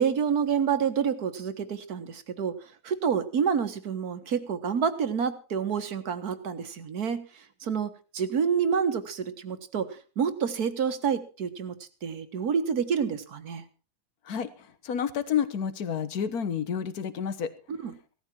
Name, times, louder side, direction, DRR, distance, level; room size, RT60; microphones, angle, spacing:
voice 1, 0.0-2.6 2.8-7.2 7.6-13.6 17.8-17.9, right 7 dB, 70° right, 10 dB, 1.9 m, -28 dB
voice 2, 14.3-17.5, left 8 dB, 70° left, 13 dB, 1.7 m, -30 dB
17.0 x 13.0 x 4.5 m, 0.36 s
omnidirectional pair, 1.7 m